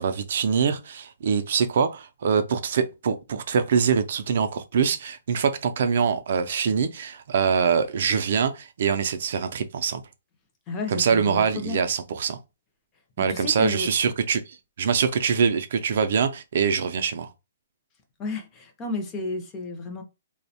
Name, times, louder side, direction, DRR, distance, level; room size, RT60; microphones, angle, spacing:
voice 1, 0.0-10.0 10.9-12.4 13.2-17.3, right 6 dB, 55° right, 0.3 m, -24 dB
voice 2, 10.7-11.8 13.2-13.9 18.2-20.0, left 3 dB, 15° left, 0.4 m, -32 dB
2.5 x 2.0 x 2.7 m
hypercardioid pair, 170°, 0 cm